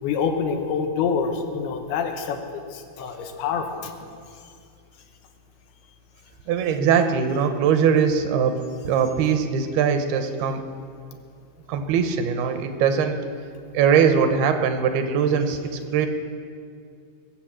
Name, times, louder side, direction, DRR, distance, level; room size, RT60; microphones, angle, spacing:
voice 1, 0.0-3.9, left 6 dB, 80° left, 5 dB, 3.1 m, -26 dB
voice 2, 6.5-10.6 11.7-13.2 13.7-16.1, right 7 dB, 80° right, 8 dB, 2.8 m, -21 dB
21.5 x 7.6 x 7.5 m, 2.3 s
omnidirectional pair, 4.5 m